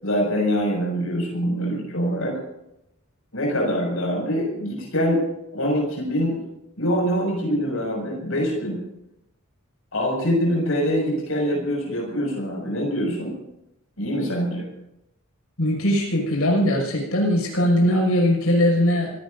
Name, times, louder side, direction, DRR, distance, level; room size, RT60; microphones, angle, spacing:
voice 1, 0.0-2.4 3.3-5.2 5.5-6.4 6.8-8.8 9.9-13.4 14.0-14.7, equal, 70° left, -1 dB, 6.3 m, -24 dB
voice 2, 15.6-19.1, equal, 85° left, 0 dB, 6.3 m, -20 dB
27.5 x 18.5 x 2.7 m, 0.84 s
head